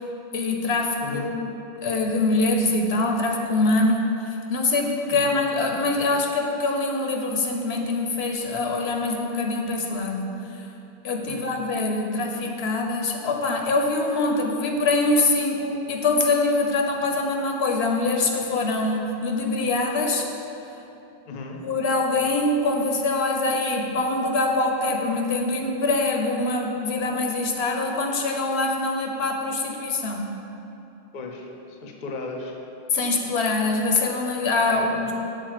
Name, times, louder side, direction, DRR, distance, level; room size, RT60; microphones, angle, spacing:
voice 1, 0.3-1.5 1.8-10.3 10.5-10.7 11.0-20.3 21.6-30.3 32.9-35.1, left 2 dB, 80° left, 1 dB, 1.0 m, -24 dB
voice 2, 1.0-1.4 5.1-5.4 11.3-11.5 21.3-21.6 31.1-32.6 34.7-34.9, left 3 dB, 55° left, 2 dB, 0.7 m, -36 dB
6.3 x 3.9 x 6.4 m, 2.9 s
omnidirectional pair, 1.1 m